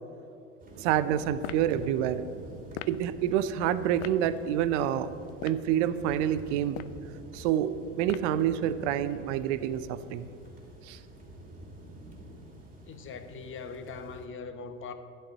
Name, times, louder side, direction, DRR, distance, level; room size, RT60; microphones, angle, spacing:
sound 1, 0.6-14.3, right 1 dB, 20° right, 2.7 m, -47 dB
voice 1, 0.8-2.2 2.9-5.1 5.4-6.8 7.3-10.3 10.8-11.0, right 10 dB, 60° right, 13 dB, 0.6 m, -28 dB
sound 2, 1.4-1.7 2.7-3.0 4.0-4.2 5.3-5.7 6.6-7.0 8.1-8.4, left 14 dB, 60° left, 0.5 m, -39 dB
voice 2, 12.8-14.9, left 5 dB, 30° left, 9 dB, 1.0 m, -41 dB
11.5 x 4.5 x 7.9 m, 2.6 s
hypercardioid pair, 75°, 39 cm